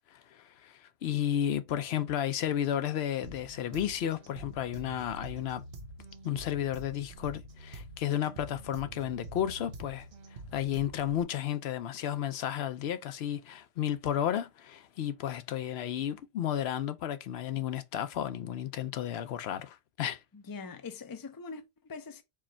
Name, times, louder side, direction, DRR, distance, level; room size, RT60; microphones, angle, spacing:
voice 1, 0.1-5.6 6.2-10.1 10.5-20.2, left 10 dB, 85° left, 0.8 m, -33 dB
sound 1, 3.2-11.2, right 2 dB, 70° right, 1.2 m, -47 dB
voice 2, 20.3-22.2, left 4 dB, 30° left, 0.5 m, -43 dB
4.7 x 2.3 x 4.3 m
omnidirectional pair, 1.0 m